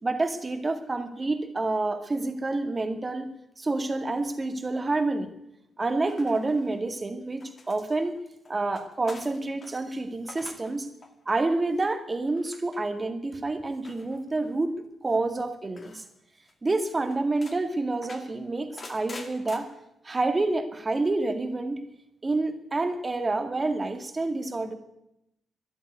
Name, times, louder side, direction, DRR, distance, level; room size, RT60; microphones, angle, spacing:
voice 1, 0.0-3.3 3.6-5.3 5.8-8.1 8.5-10.9 11.3-14.7 15.0-16.0 16.6-19.7 20.0-21.8 22.2-24.7, right 2 dB, 25° right, 7 dB, 2.1 m, -28 dB
sound 1, 6.1-7.0 7.4-9.8 10.1-10.7 11.0-11.4 12.3-12.8 13.8-14.6 15.7-16.1 16.5-16.6 16.9-17.6 18.0-19.6, left 3 dB, 40° left, 2.2 m, -46 dB
13.0 x 11.0 x 9.5 m, 0.82 s
cardioid pair, 85°, 0 cm